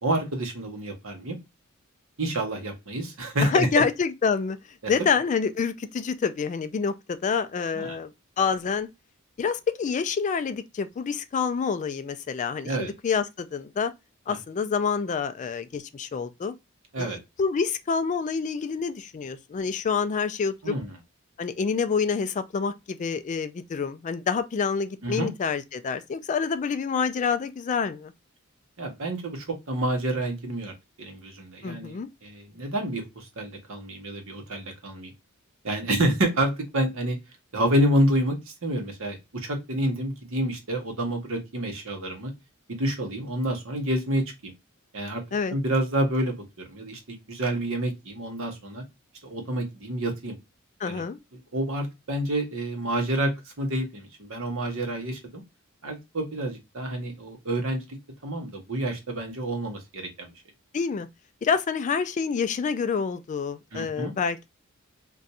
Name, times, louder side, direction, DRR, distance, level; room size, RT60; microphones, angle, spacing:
voice 1, 0.0-1.4 2.2-3.8 7.7-8.0 12.6-12.9 14.3-14.4 16.9-17.2 20.6-21.0 25.0-25.3 28.8-35.1 35.6-37.2 37.5-42.3 42.7-44.5 44.9-45.2 45.5-48.8 49.2-50.4 50.8-51.0 51.5-55.4 55.8-57.8 58.2-60.3 63.7-64.1, right 1 dB, 70° right, 1.0 m, -28 dB
voice 2, 3.4-4.6 4.9-8.1 8.4-8.9 9.4-13.9 14.3-16.5 17.0-20.7 21.4-28.1 31.6-32.1 45.3-45.5 50.8-51.2 60.7-61.1 61.4-64.5, left 5 dB, 35° left, 0.3 m, -27 dB
2.5 x 2.2 x 4.0 m
head